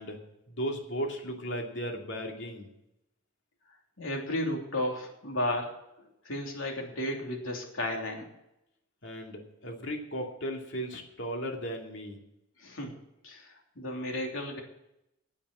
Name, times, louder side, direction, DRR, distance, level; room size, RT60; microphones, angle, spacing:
voice 1, 0.0-2.7 9.0-12.2, equal, 65° left, 1 dB, 2.5 m, -36 dB
voice 2, 4.0-8.3 12.6-12.9 13.2-14.6, left 1 dB, 90° left, 0 dB, 3.2 m, -34 dB
9.8 x 8.5 x 8.7 m, 0.83 s
head